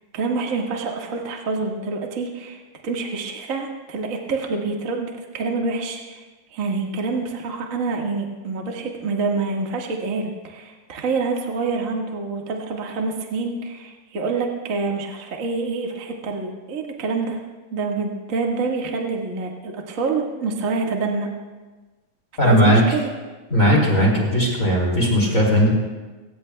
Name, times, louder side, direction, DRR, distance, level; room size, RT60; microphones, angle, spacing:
voice 1, 0.1-6.2 6.5-17.4 17.7-21.3 22.4-23.1, right 4 dB, 55° right, 0 dB, 0.8 m, -27 dB
voice 2, 22.4-22.8 23.5-25.7, equal, 25° left, -2 dB, 2.6 m, -17 dB
23.0 x 17.5 x 2.3 m, 1.3 s
omnidirectional pair, 4.5 m